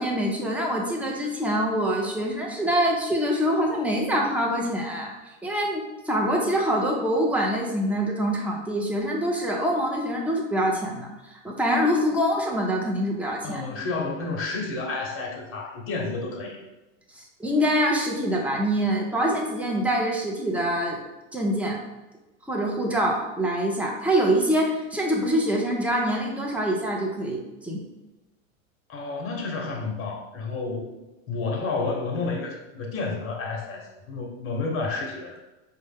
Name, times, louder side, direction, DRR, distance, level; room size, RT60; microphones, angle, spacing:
voice 1, 0.0-5.1 5.4-13.6 17.2-21.0 21.3-21.8 22.5-27.8, equal, 5° right, -1 dB, 0.7 m, -25 dB
voice 2, 13.4-16.6 28.9-30.9 31.3-35.4, left 3 dB, 35° left, 0 dB, 1.1 m, -30 dB
5.2 x 2.2 x 3.5 m, 1.0 s
hypercardioid pair, 105°, 40 cm